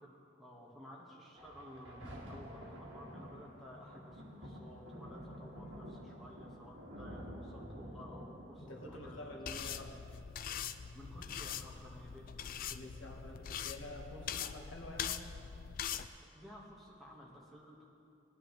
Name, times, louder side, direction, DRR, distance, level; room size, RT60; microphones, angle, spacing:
voice 1, 0.4-9.3 9.6-9.9 10.9-12.2 16.2-17.9, equal, ahead, -5 dB, 1.5 m, -54 dB
sound 1, 1.4-5.8 6.2-6.3 6.5-7.0, equal, 30° right, 1.7 m, -59 dB
Thunder, 1.5-12.5 13.2-13.3, equal, 65° right, 2.0 m, -50 dB
voice 2, 8.6-10.0 12.5-15.3, left 1 dB, 75° left, 1 dB, 1.4 m, -48 dB
sound 2, 9.5-16.1, left 8 dB, 45° left, 0.3 m, -42 dB
19.5 x 10.0 x 3.2 m, 2.7 s
head